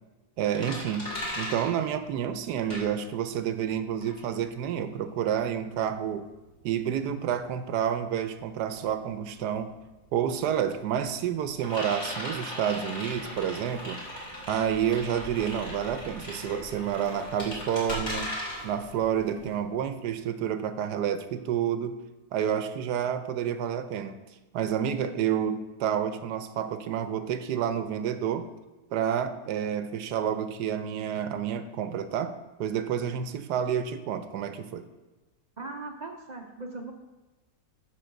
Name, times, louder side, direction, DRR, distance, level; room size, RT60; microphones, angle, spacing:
voice 1, 0.4-6.3 6.6-9.7 10.1-14.0 14.5-18.3 18.6-22.0 22.3-24.2 24.5-28.5 28.9-34.8, right 9 dB, 75° right, 10 dB, 1.2 m, -29 dB
sound 1, 0.5-3.4 3.7-20.1, left 1 dB, 55° left, 3.5 m, -38 dB
sound 2, 13.1-19.6, equal, 25° left, 2.0 m, -50 dB
voice 2, 35.6-36.9, right 3 dB, 50° right, 2 dB, 0.5 m, -39 dB
11.0 x 3.9 x 6.5 m, 1.2 s
omnidirectional pair, 1.8 m